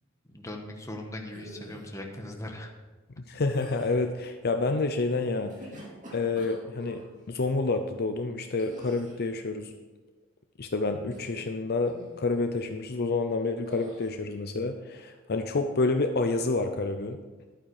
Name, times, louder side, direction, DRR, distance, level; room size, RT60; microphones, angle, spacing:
voice 1, 0.2-2.7, left 1 dB, 15° left, 2 dB, 1.4 m, -39 dB
sound 1, 1.3-2.0 3.4-4.1 5.3-7.1 8.6-9.3 11.0-11.6 11.9-12.3 13.7-14.1, right 1 dB, 40° right, 2.8 m, -46 dB
voice 2, 3.2-5.5 6.1-7.0 7.3-9.7 10.6-17.2, left 3 dB, 50° left, 6 dB, 0.7 m, -28 dB
11.5 x 8.9 x 4.9 m, 1.2 s
head